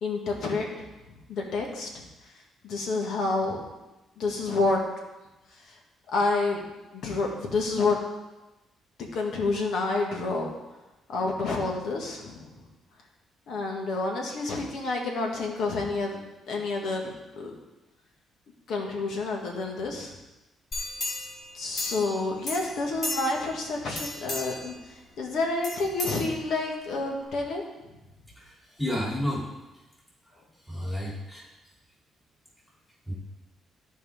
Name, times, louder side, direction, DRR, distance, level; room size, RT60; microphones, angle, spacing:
voice 1, 0.0-0.9 1.3-2.1 2.6-3.6 4.2-4.8 5.6-5.7 6.1-6.6 6.9-8.0 9.0-10.5 11.1-12.6 13.5-17.5 18.7-20.1 21.5-27.6, left 3 dB, 75° left, 0 dB, 1.9 m, -29 dB
sound 1, 20.7-22.2 22.5-23.5 23.9-24.7 25.6-26.7 27.2-27.3, left 2 dB, 40° left, 2.6 m, -34 dB
voice 2, 28.4-29.5 30.7-31.4 33.1-33.2, left 1 dB, 5° left, -5 dB, 3.1 m, -31 dB
14.0 x 4.7 x 3.6 m, 1.0 s
cardioid pair, 90°, 0 cm